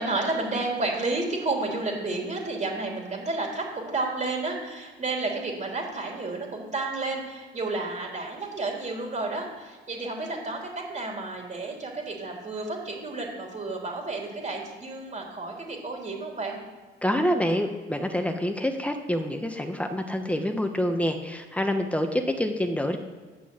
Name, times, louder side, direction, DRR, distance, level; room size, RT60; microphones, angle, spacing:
voice 1, 0.0-16.6, right 3 dB, 35° right, 0 dB, 3.0 m, -31 dB
voice 2, 17.0-23.0, equal, 5° left, 5 dB, 1.2 m, -27 dB
9.5 x 6.2 x 8.2 m, 1.4 s
cardioid pair, 90°, 20 cm